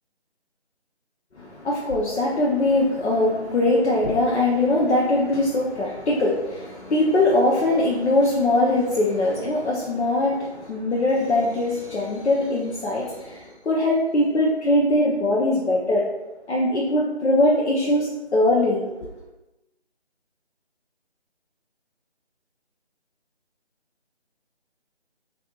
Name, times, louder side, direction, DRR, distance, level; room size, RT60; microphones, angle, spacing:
voice 1, 1.3-16.1 16.5-19.1, left 1 dB, 75° left, -4 dB, 0.6 m, -21 dB
2.5 x 2.3 x 2.8 m, 1.0 s
figure-of-eight pair, 180°, 34 cm